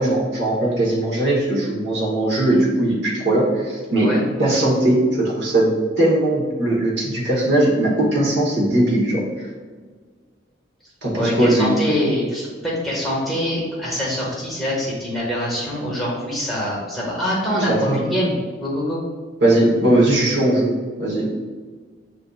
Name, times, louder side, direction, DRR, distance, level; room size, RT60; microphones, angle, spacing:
voice 1, 0.0-4.1 4.4-5.7 6.0-9.5 11.0-11.7 17.6-18.0 19.4-20.7 21.0-21.3, right 1 dB, 60° right, -4 dB, 1.2 m, -19 dB
voice 2, 11.1-19.0, equal, ahead, -7 dB, 1.0 m, -24 dB
7.5 x 2.6 x 2.4 m, 1.5 s
head